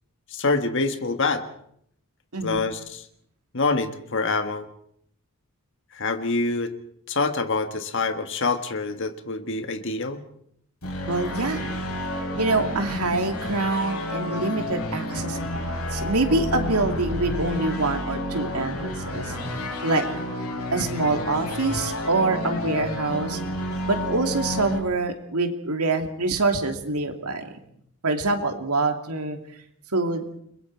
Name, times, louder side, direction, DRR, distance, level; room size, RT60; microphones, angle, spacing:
voice 1, 0.3-1.4 2.4-3.0 3.5-4.7 5.9-6.7 7.1-10.2, left 3 dB, 55° left, 8 dB, 1.7 m, -26 dB
sound 1, 10.8-24.8, left 1 dB, 85° left, 7.7 m, -30 dB
voice 2, 11.1-11.8 12.4-15.4 15.9-19.3 19.8-20.1 20.7-23.4 23.9-27.5 28.0-29.4 29.9-30.3, right 3 dB, 85° right, 5 dB, 2.6 m, -25 dB
30.0 x 22.0 x 4.7 m, 0.69 s
head